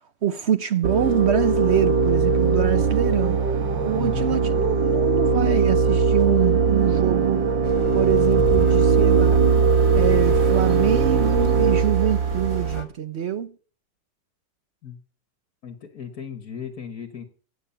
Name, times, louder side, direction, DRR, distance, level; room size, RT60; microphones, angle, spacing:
voice 1, 0.2-3.4 3.8-7.4 7.9-9.5 9.9-13.5, right 9 dB, 55° right, 0.7 m, -25 dB
sound 1, 0.8-12.8, right 5 dB, 90° right, 2.2 m, -20 dB
voice 2, 3.9-4.4 14.8-15.0 15.6-17.2, left 8 dB, 55° left, 1.9 m, -35 dB
sound 2, 7.6-12.9, left 3 dB, 15° left, 1.3 m, -35 dB
15.5 x 9.5 x 5.8 m
omnidirectional pair, 1.9 m